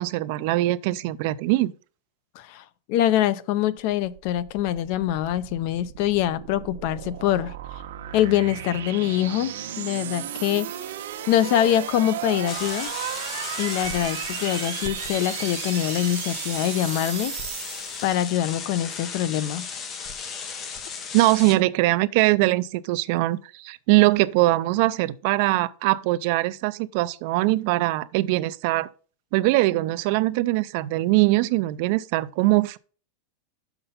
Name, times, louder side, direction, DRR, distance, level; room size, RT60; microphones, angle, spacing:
voice 1, 0.0-1.7 21.1-28.9 29.3-32.8, right 19 dB, 45° right, 0.3 m, -22 dB
voice 2, 2.4-7.5 8.1-10.7 11.3-12.9 13.6-17.3 18.0-19.6, left 12 dB, 40° left, 0.5 m, -24 dB
sound 1, 3.9-18.5, right 11 dB, 80° right, 1.0 m, -35 dB
sound 2, 12.5-21.5, left 6 dB, 20° left, 0.8 m, -36 dB
6.6 x 5.9 x 5.4 m
supercardioid pair, 175°, 0 cm